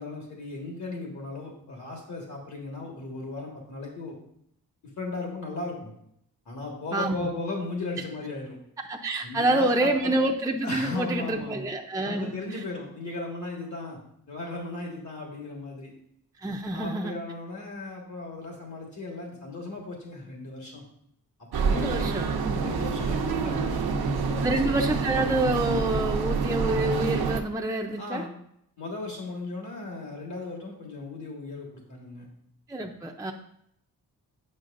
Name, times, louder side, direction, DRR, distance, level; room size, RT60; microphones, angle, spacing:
voice 1, 0.0-4.2 5.0-5.9 6.5-8.6 9.2-10.2 10.6-11.7 12.0-14.0 14.3-15.9 16.7-20.8 21.6-22.1 22.6-24.8 28.0-28.3 28.8-32.3, left 2 dB, 50° left, -1 dB, 1.6 m, -36 dB
voice 2, 6.9-7.3 8.8-12.6 16.4-17.2 21.6-22.7 24.4-28.3 32.7-33.3, right 1 dB, 10° right, 3 dB, 0.5 m, -27 dB
sound 1, 21.5-27.4, right 5 dB, 90° right, 0.8 m, -27 dB
9.3 x 6.1 x 2.5 m, 0.73 s
wide cardioid pair, 120°, 36 cm